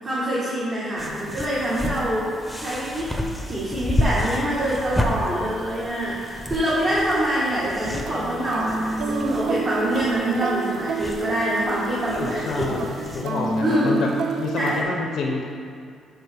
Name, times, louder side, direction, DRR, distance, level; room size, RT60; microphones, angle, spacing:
voice 1, 0.0-3.1 3.4-13.3 13.6-14.1 14.5-14.9, right 1 dB, 45° right, -9 dB, 1.3 m, -25 dB
sound 1, 1.0-13.2, left 1 dB, 5° left, 0.6 m, -32 dB
sound 2, 2.7-2.8 3.5-4.7 5.0-5.3 5.6-7.2 7.5-14.8, right 4 dB, 70° right, 0.4 m, -30 dB
voice 2, 12.1-14.1 14.4-15.4, left 3 dB, 70° left, 0 dB, 0.5 m, -27 dB
8.1 x 3.7 x 3.4 m, 2.3 s
cardioid pair, 90°, 0 cm